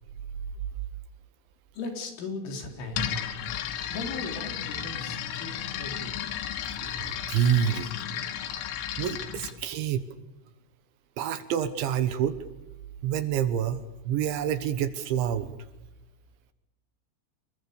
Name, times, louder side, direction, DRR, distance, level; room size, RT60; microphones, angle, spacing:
voice 1, 1.7-3.1 3.9-6.1, left 3 dB, 70° left, 4 dB, 6.6 m, -37 dB
sound 1, 2.9-9.6, left 9 dB, 85° left, 4.5 m, -34 dB
voice 2, 6.8-7.9 9.0-10.0 11.2-12.4 13.0-15.6, right 9 dB, 70° right, 11 dB, 3.3 m, -27 dB
29.0 x 22.5 x 7.0 m, 0.95 s
omnidirectional pair, 6.0 m